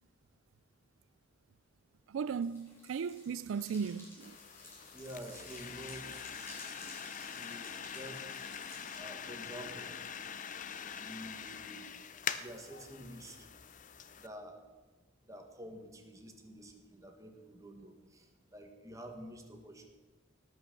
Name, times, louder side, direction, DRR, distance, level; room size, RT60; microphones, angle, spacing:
voice 1, 2.1-4.4, right 6 dB, 80° right, 0.3 m, -36 dB
sound 1, 2.2-9.0, left 1 dB, 10° left, 3.5 m, -54 dB
sound 2, 4.2-14.3, left 7 dB, 40° left, 0.6 m, -44 dB
voice 2, 4.9-6.1 7.3-8.3 8.9-10.5 10.9-12.0 12.3-13.5 14.1-14.6 15.2-19.9, right 1 dB, 15° right, 1.6 m, -49 dB
18.5 x 6.4 x 6.8 m
head